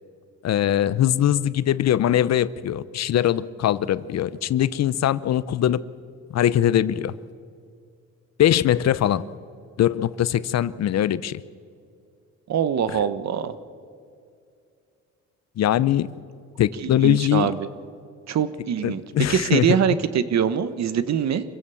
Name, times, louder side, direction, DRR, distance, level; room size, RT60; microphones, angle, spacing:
voice 1, 0.4-5.8 6.3-7.1 8.4-9.2 9.8-11.4 15.6-16.1 16.6-17.5 18.8-19.8, left 11 dB, 60° left, 18 dB, 0.7 m, -21 dB
voice 2, 12.5-13.5 16.8-17.6 18.3-19.0 19.3-21.4, right 8 dB, 60° right, 13 dB, 1.2 m, -23 dB
26.0 x 15.5 x 7.0 m, 2.3 s
cardioid pair, 90°, 30 cm